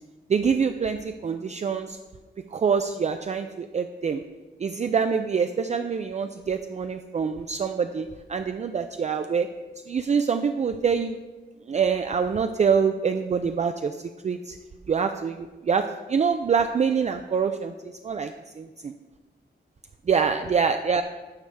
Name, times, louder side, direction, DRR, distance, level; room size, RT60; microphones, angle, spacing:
voice 1, 0.3-2.0 2.5-4.2 4.6-9.5 9.9-11.2 11.7-14.0 14.2-14.6 14.9-17.7 18.0-18.9 20.1-21.0, right 6 dB, 40° right, 7 dB, 0.3 m, -25 dB
11.5 x 6.9 x 3.4 m, 1.3 s
wide cardioid pair, 130°, 18 cm